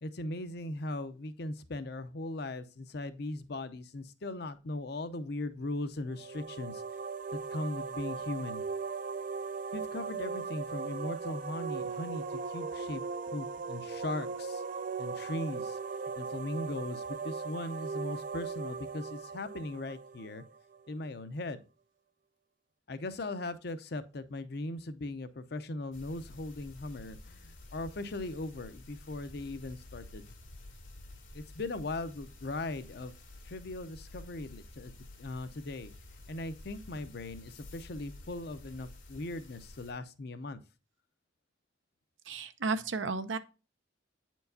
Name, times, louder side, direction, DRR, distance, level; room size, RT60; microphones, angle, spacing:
voice 1, 0.0-6.8 7.3-8.6 9.7-14.6 15.0-15.8 16.2-20.4 20.9-21.6 22.9-30.2 31.3-33.1 33.4-34.9 35.2-35.9 36.3-40.6, left 2 dB, 60° left, 0.6 m, -39 dB
sound 1, 6.1-20.8, right 5 dB, 45° right, 0.3 m, -38 dB
sound 2, 25.9-39.9, left 1 dB, 90° left, 1.9 m, -51 dB
voice 2, 42.3-43.4, right 4 dB, 90° right, 0.7 m, -33 dB
8.6 x 4.5 x 2.6 m
head